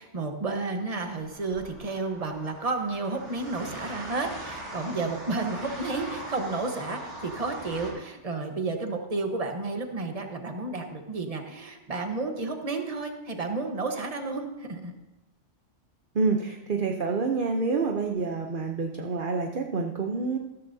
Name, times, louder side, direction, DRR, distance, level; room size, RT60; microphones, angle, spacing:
voice 1, 0.0-14.9, right 3 dB, 30° right, 4 dB, 1.3 m, -31 dB
sound 1, 1.0-7.9, right 1 dB, 65° right, 5.0 m, -41 dB
voice 2, 16.1-20.4, right 4 dB, 45° right, 3 dB, 1.0 m, -27 dB
15.0 x 14.0 x 2.8 m, 1.0 s
omnidirectional pair, 1.3 m